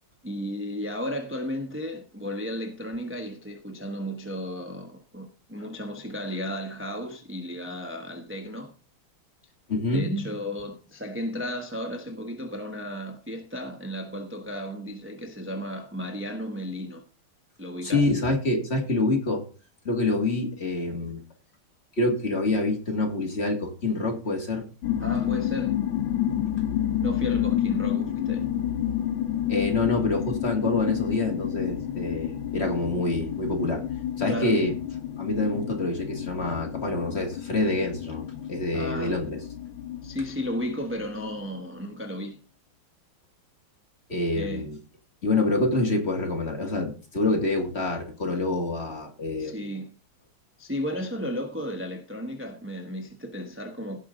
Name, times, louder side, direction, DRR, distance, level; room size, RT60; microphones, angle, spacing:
voice 1, 0.2-8.7 9.9-17.0 17.6-18.2 25.0-25.7 27.0-28.4 34.3-34.6 38.7-39.2 40.0-42.4 44.3-44.7 49.4-50.0 50.6-54.0, equal, 10° right, 0.8 m, -34 dB
voice 2, 9.7-10.1 17.8-19.4 19.8-21.2 22.0-24.6 29.5-33.8 34.2-34.7 35.2-39.4 44.1-44.8 45.2-49.5, left 2 dB, 30° left, 2.3 m, -26 dB
sound 1, 24.8-41.4, left 11 dB, 75° left, 1.8 m, -30 dB
17.0 x 5.7 x 3.9 m
omnidirectional pair, 2.3 m